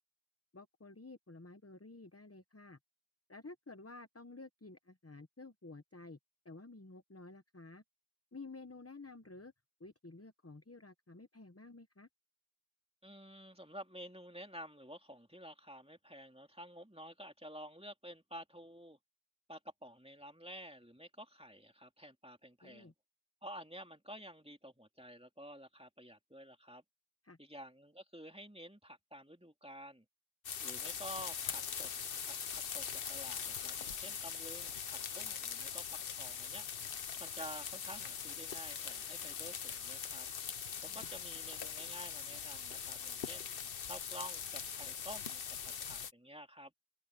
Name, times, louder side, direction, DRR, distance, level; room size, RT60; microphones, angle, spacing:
voice 1, 0.5-2.8 3.3-6.2 6.4-7.8 8.3-9.5 9.8-12.1 22.6-22.9 27.2-27.4 40.8-41.1, left 3 dB, 15° left, 0.7 m, -52 dB
voice 2, 13.0-19.0 19.5-22.9 23.4-26.8 27.4-30.1 30.6-31.9 32.2-32.8 33.1-36.6 37.2-40.3 40.9-43.5 43.9-46.7, equal, 5° right, 2.7 m, -51 dB
sound 1, 30.4-46.1, left 7 dB, 65° left, 1.1 m, -42 dB
open air
omnidirectional pair, 1.1 m